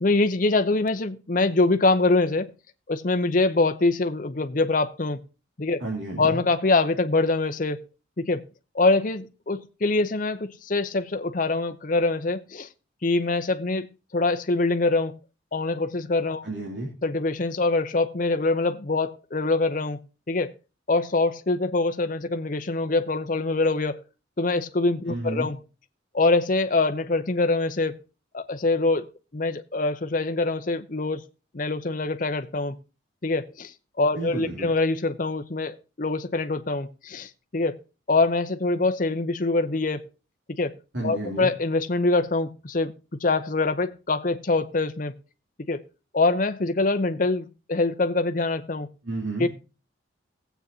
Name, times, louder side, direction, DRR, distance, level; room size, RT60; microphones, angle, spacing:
voice 1, 0.0-2.5 2.9-5.2 5.6-5.8 6.2-7.9 8.2-8.4 8.7-12.7 13.0-15.2 15.5-16.4 17.0-20.0 20.3-20.5 20.9-24.0 24.4-25.6 26.1-28.0 28.3-31.2 31.5-32.8 33.2-37.8 38.1-40.1 40.5-40.8 41.0-42.9 43.2-45.1 45.6-45.8 46.1-48.9 49.4-49.5, left 3 dB, 40° left, 0.7 m, -24 dB
voice 2, 5.8-6.4 16.4-16.9 25.1-25.5 34.1-34.7 40.9-41.5 49.0-49.5, right 2 dB, 70° right, 2.9 m, -31 dB
18.5 x 8.0 x 2.8 m
head